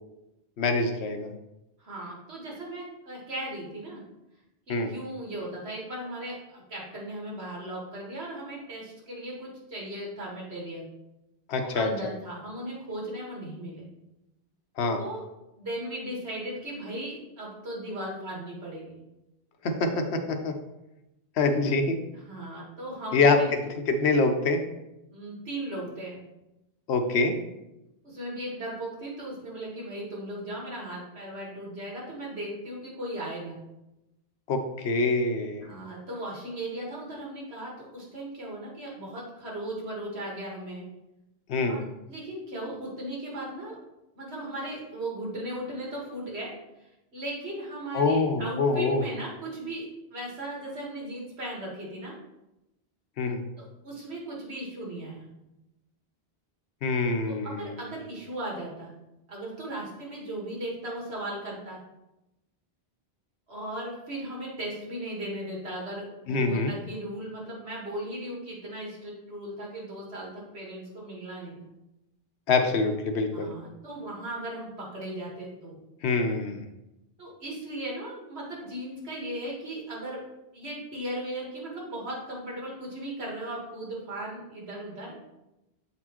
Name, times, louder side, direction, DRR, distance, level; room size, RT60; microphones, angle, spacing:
voice 1, 0.6-1.3 4.7-4.9 11.5-11.9 14.8-15.0 19.6-20.5 21.4-22.0 23.1-24.6 26.9-27.3 34.5-35.6 41.5-41.8 47.9-49.0 53.2-53.4 56.8-57.8 66.3-66.7 72.5-73.5 76.0-76.7, left 3 dB, 90° left, 5 dB, 1.0 m, -25 dB
voice 2, 1.8-4.0 4.7-10.9 11.6-13.9 14.9-15.2 15.6-19.0 22.3-23.5 25.1-26.2 28.0-33.6 35.6-40.9 41.7-43.8 44.2-46.5 47.1-52.1 53.6-55.2 57.3-58.9 59.3-61.8 63.5-71.7 73.3-75.8 77.2-80.2 80.5-85.2, right 1 dB, 80° right, -3 dB, 1.9 m, -37 dB
7.6 x 4.2 x 3.0 m, 0.94 s
omnidirectional pair, 1.1 m